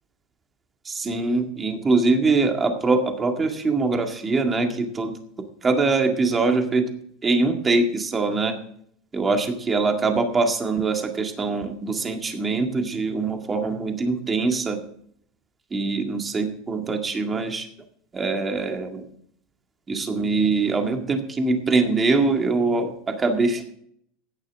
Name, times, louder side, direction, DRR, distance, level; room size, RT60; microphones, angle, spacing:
voice 1, 0.9-5.1 5.6-6.9 7.2-8.6 9.1-14.8 15.7-17.7 18.1-19.0 19.9-23.7, right 3 dB, 15° right, 4 dB, 2.0 m, -23 dB
16.0 x 11.0 x 3.6 m, 0.66 s
supercardioid pair, 150°, 0 cm